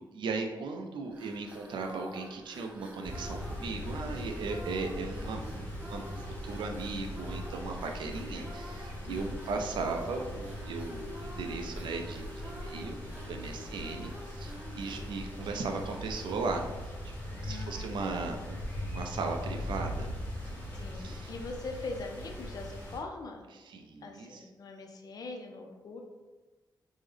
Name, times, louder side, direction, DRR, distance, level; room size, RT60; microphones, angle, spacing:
voice 1, 0.0-13.0 13.3-16.6 17.3-18.6 18.8-20.1 20.4-20.6 21.0-21.3 23.7-24.4, right 4 dB, 85° right, 3 dB, 0.4 m, -37 dB
sound 1, 1.0-17.5, right 1 dB, 15° right, 0.4 m, -48 dB
sound 2, 3.0-23.0, left 1 dB, 20° left, 0.8 m, -40 dB
voice 2, 9.0-9.6 17.4-18.4 20.7-23.5 24.0-26.0, left 3 dB, 55° left, 3 dB, 0.5 m, -42 dB
3.6 x 2.0 x 3.1 m, 1.2 s
wide cardioid pair, 160°, 8 cm